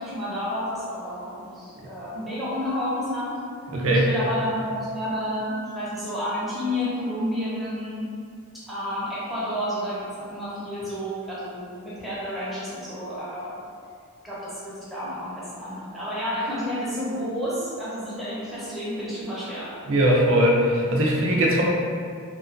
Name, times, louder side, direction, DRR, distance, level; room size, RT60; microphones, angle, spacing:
voice 1, 0.0-3.4 3.9-8.0 8.7-13.6 14.2-19.7, equal, ahead, -10 dB, 0.6 m, -30 dB
voice 2, 3.7-4.1 19.9-21.6, equal, 60° right, -3 dB, 0.5 m, -20 dB
2.9 x 2.2 x 2.5 m, 2.3 s
head